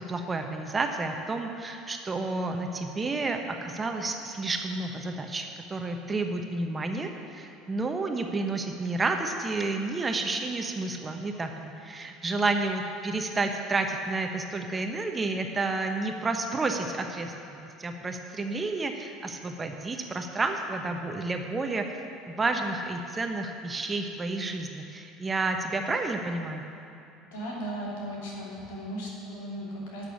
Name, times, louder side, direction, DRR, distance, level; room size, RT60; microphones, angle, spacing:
voice 1, 0.0-21.9 22.3-26.6, right 3 dB, 25° right, 4 dB, 1.1 m, -30 dB
voice 2, 27.3-30.0, equal, 70° left, -4 dB, 2.7 m, -36 dB
11.0 x 6.8 x 7.1 m, 2.6 s
figure-of-eight pair, 65°, 0 cm